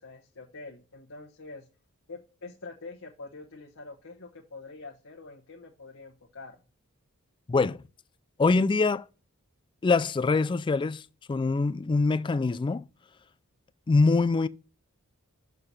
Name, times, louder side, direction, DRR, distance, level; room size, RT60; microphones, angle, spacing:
voice 1, 0.0-1.7 2.1-6.6, left 3 dB, 65° left, 1.1 m, -45 dB
voice 2, 8.4-9.0 9.8-11.0 11.3-12.8 13.9-14.5, left 3 dB, 20° left, 0.3 m, -24 dB
6.7 x 4.8 x 5.6 m
head